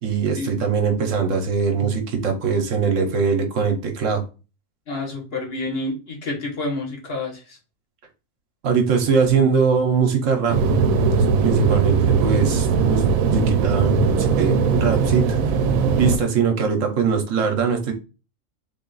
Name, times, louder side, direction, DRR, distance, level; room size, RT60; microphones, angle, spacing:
voice 1, 0.0-4.2 8.6-10.6 11.0-13.0 13.3-15.6 16.0-17.9, right 5 dB, 70° right, 4 dB, 1.1 m, -21 dB
voice 2, 4.9-7.6, left 2 dB, 50° left, 1 dB, 1.2 m, -29 dB
sound 1, 10.5-16.2, right 5 dB, 90° right, 1.0 m, -19 dB
3.6 x 2.4 x 3.8 m, 0.32 s
omnidirectional pair, 1.4 m